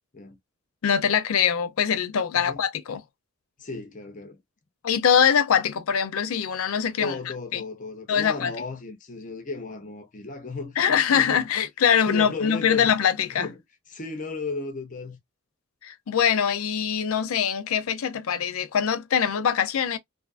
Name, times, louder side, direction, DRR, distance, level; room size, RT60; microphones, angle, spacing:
voice 1, 0.8-3.0 4.8-7.2 7.5-7.6 8.1-8.5 10.8-13.5 15.8-20.0, left 7 dB, 85° left, 0.5 m, -23 dB
voice 2, 3.6-4.4 7.0-10.8 11.1-11.5 12.0-12.9 13.3-13.6 13.9-15.2, left 3 dB, 40° left, 0.6 m, -35 dB
2.6 x 2.4 x 2.3 m
head